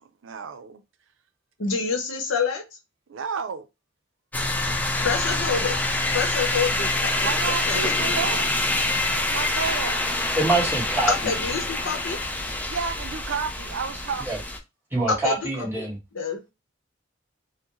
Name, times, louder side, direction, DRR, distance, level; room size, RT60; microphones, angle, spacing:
voice 1, 0.0-0.8 3.1-3.7 7.2-8.5 9.1-10.1 12.7-14.5, right 6 dB, 85° right, 0.5 m, -31 dB
voice 2, 1.6-2.8 5.0-5.8 6.1-7.3 7.7-7.8 11.1-12.2 15.1-15.9 16.1-16.4, left 5 dB, 85° left, 0.8 m, -27 dB
sound 1, 4.3-14.6, left 2 dB, 10° left, 0.4 m, -26 dB
voice 3, 10.4-11.1 14.3-14.4 14.9-16.0, right 2 dB, 10° right, 1.6 m, -24 dB
4.6 x 2.1 x 3.0 m
head